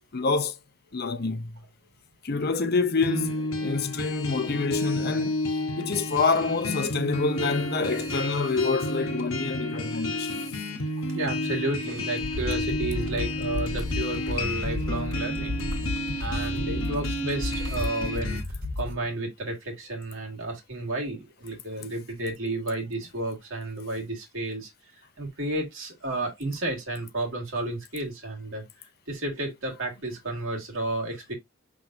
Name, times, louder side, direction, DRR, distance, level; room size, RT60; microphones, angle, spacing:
voice 1, 0.1-0.6 0.9-1.6 2.2-5.4 5.8-10.5, left 4 dB, 45° left, 0.6 m, -27 dB
sound 1, 3.0-18.4, left 1 dB, 70° left, 1.0 m, -31 dB
voice 2, 11.1-15.7 16.2-18.4 18.8-24.7 25.2-28.6 29.1-31.3, right 2 dB, 65° right, 1.9 m, -32 dB
sound 2, 12.2-19.0, left 2 dB, 50° right, 1.9 m, -33 dB
5.9 x 3.5 x 2.5 m
head